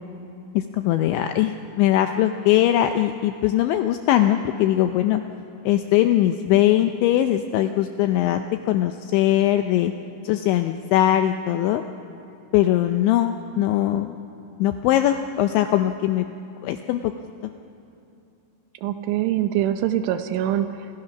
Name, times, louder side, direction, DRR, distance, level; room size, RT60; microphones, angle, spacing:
voice 1, 0.5-5.2 5.7-9.9 10.2-11.8 12.5-14.1 14.6-16.3 16.6-17.1, left 12 dB, 85° left, 7 dB, 2.7 m, -21 dB
voice 2, 18.8-20.9, right 11 dB, 80° right, 8 dB, 3.0 m, -24 dB
29.5 x 26.0 x 5.9 m, 2.6 s
omnidirectional pair, 6.0 m